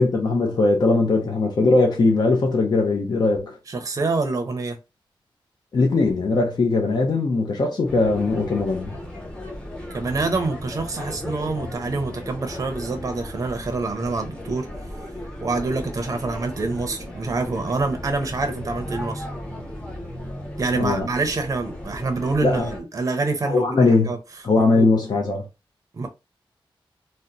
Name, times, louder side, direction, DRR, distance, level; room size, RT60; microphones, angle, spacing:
voice 1, 0.0-3.6 5.7-8.9 20.7-21.1 22.4-22.7 23.5-24.2 24.4-25.5, left 3 dB, 55° left, 0.6 m, -20 dB
voice 2, 3.7-4.8 9.9-14.7 15.4-19.3 20.6-24.2 24.7-24.9 25.9-26.1, right 3 dB, 40° right, 0.6 m, -26 dB
sound 1, 7.9-22.8, left 1 dB, 10° left, 0.9 m, -35 dB
2.8 x 2.1 x 3.7 m
wide cardioid pair, 165°, 9 cm